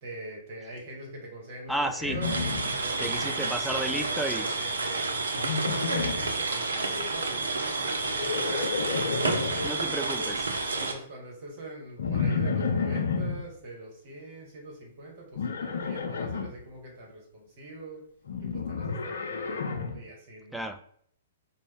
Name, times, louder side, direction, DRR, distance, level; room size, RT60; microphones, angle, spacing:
voice 1, 0.0-2.4 2.7-9.0 9.5-10.3 10.7-18.0 18.4-20.6, right 1 dB, 45° right, -1 dB, 1.4 m, -43 dB
voice 2, 1.7-2.2 3.0-4.5 9.6-10.4 20.5-20.9, right 1 dB, ahead, 6 dB, 0.3 m, -32 dB
Livestock farm animals working animals, 2.0-3.3 3.5-4.1 5.4-6.4 7.9-9.7 12.0-13.4 15.3-16.5 18.3-20.0, left 5 dB, 65° left, 0.6 m, -31 dB
sound 1, 2.2-10.9, right 3 dB, 75° right, 0.6 m, -30 dB
5.0 x 2.2 x 3.6 m, 0.65 s
figure-of-eight pair, 115°, 0 cm